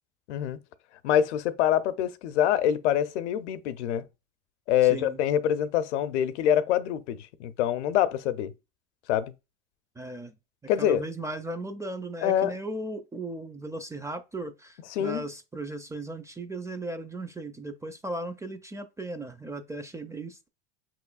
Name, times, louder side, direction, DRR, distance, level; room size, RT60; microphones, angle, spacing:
voice 1, 0.3-0.6 1.0-4.0 4.7-8.5 9.1-9.3 10.7-11.0 12.2-12.5 14.9-15.2, left 10 dB, 75° left, 0.6 m, -25 dB
voice 2, 4.9-5.2 10.0-10.4 10.8-20.5, right 2 dB, 10° right, 0.4 m, -37 dB
5.8 x 3.1 x 2.3 m
hypercardioid pair, 90°, 35 cm